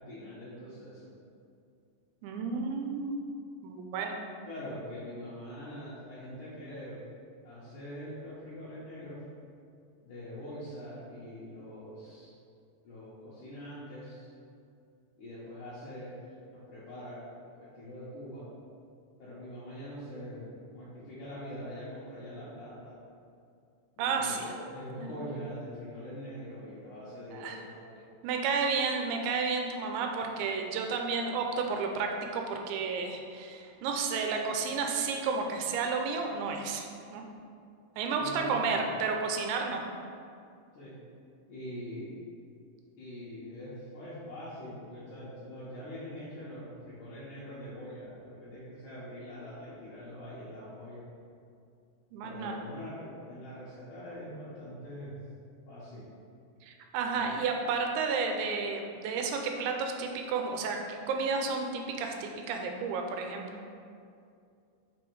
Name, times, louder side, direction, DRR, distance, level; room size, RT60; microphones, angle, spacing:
voice 1, 0.1-1.1 4.5-7.0 7.4-9.2 10.0-12.3 12.8-14.3 15.2-16.2 16.5-17.2 17.5-18.5 19.2-23.0 24.0-28.0 38.2-38.9 40.7-40.9 41.5-42.2 43.0-51.0 52.2-55.2 55.7-56.0 57.1-57.3, equal, 80° left, -10 dB, 1.8 m, -43 dB
voice 2, 2.2-3.2 3.6-4.2 24.0-24.5 27.3-27.6 28.2-37.2 38.0-39.8 52.1-52.6 56.6-63.5, right 4 dB, 80° right, 3 dB, 2.7 m, -32 dB
6.1 x 5.2 x 4.6 m, 2.4 s
omnidirectional pair, 5.5 m